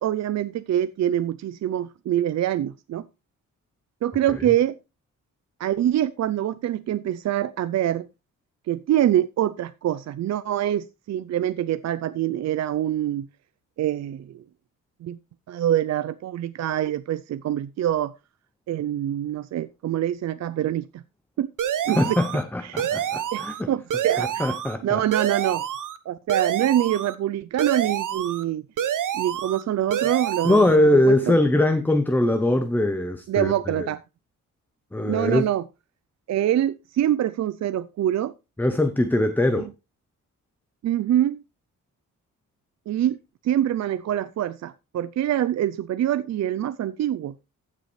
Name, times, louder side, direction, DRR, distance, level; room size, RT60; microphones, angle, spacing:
voice 1, 0.0-3.0 4.0-4.8 5.6-8.1 8.7-13.3 13.8-14.4 15.0-15.2 15.5-18.2 18.7-21.0 21.4-21.5 21.9-22.2 22.6-22.9 23.3-24.5 24.8-25.7 26.1-28.7 29.1-31.4 33.3-34.0 35.0-35.6 36.3-38.3 39.6-39.7 40.8-41.4 42.9-43.2 43.4-47.3, right 11 dB, 55° right, 0.5 m, -25 dB
sound 1, 21.6-22.4 22.8-23.6 23.9-24.8 25.1-26.0 26.3-27.1 27.6-28.4 28.8-29.6 29.9-30.8, right 9 dB, 75° right, 1.1 m, -27 dB
voice 2, 21.9-23.7 24.2-25.0 30.4-33.9 34.9-35.5 38.6-39.7, left 1 dB, 5° left, 0.6 m, -21 dB
15.0 x 6.7 x 3.2 m
wide cardioid pair, 145°, 32 cm